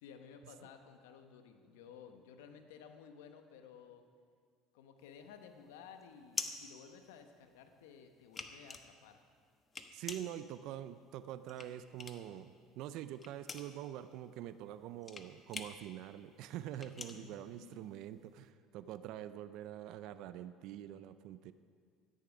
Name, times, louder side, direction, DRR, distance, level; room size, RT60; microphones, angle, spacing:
voice 1, 0.0-4.0 4.7-9.2 17.1-17.9, left 7 dB, 85° left, 7 dB, 1.0 m, -55 dB
sound 1, 5.0-7.6 8.0-12.4 12.7-18.2, left 4 dB, 30° left, 1.0 m, -46 dB
voice 2, 9.9-21.5, right 11 dB, 65° right, 13 dB, 0.5 m, -45 dB
13.0 x 10.0 x 5.1 m, 2.1 s
supercardioid pair, 80°, 0 cm